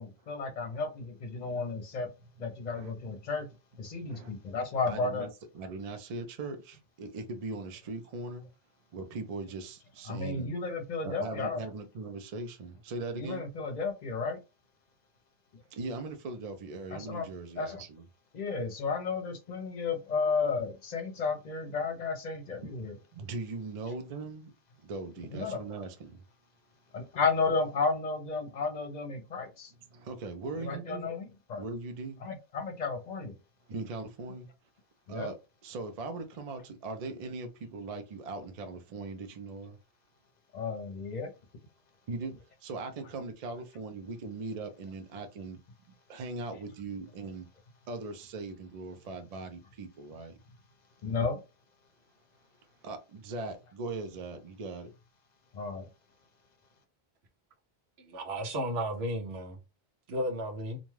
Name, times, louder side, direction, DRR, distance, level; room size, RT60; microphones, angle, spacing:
voice 1, 0.0-2.1 2.4-3.5 3.8-5.3 10.1-11.6 13.2-14.4 16.9-17.8 18.3-23.0 25.3-25.6 26.9-29.7 30.6-31.6 32.2-33.3 35.1-35.3 40.5-41.3 51.0-51.4 55.5-55.9, left 4 dB, 50° left, 0.7 m, -33 dB
voice 2, 4.0-4.3 4.9-5.3 5.5-8.4 8.9-10.5 11.0-13.4 15.7-18.0 23.1-24.5 24.8-26.2 29.9-31.1 31.6-32.2 33.7-34.5 35.1-35.4 35.6-39.8 42.1-42.3 42.6-45.6 46.1-47.5 47.9-50.3 52.8-54.9, right 3 dB, 45° right, 0.5 m, -40 dB
voice 3, 58.0-59.6 60.1-60.8, equal, 90° right, 1.0 m, -34 dB
2.6 x 2.3 x 3.1 m
omnidirectional pair, 1.0 m